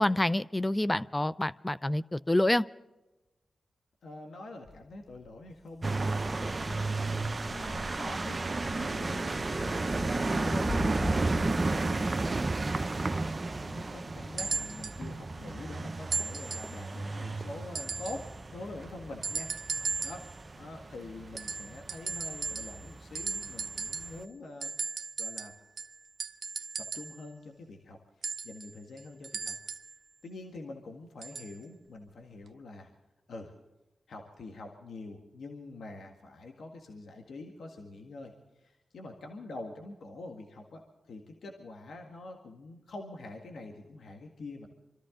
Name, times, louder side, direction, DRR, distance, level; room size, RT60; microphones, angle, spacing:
voice 1, 0.0-2.6, left 1 dB, 20° left, 16 dB, 0.5 m, -27 dB
voice 2, 4.0-8.4 8.7-12.1 12.6-20.3 20.6-24.7 25.2-25.5 26.9-29.6 30.2-32.9 33.3-33.5 34.1-44.7, left 2 dB, 80° left, 2 dB, 1.8 m, -45 dB
sound 1, 4.6-13.6, left 3 dB, 40° left, 0.9 m, -44 dB
sound 2, 5.8-24.2, right 3 dB, 40° right, 0.8 m, -33 dB
sound 3, 14.4-15.0 16.1-16.8 17.7-18.3 19.2-20.3 21.4-22.9 23.1-24.2 24.6-27.2 28.2-30.0 31.2-31.5 32.5-32.6, right 4 dB, 70° right, 0.6 m, -36 dB
25.5 x 13.5 x 3.8 m, 1.0 s
supercardioid pair, 40°, 0 cm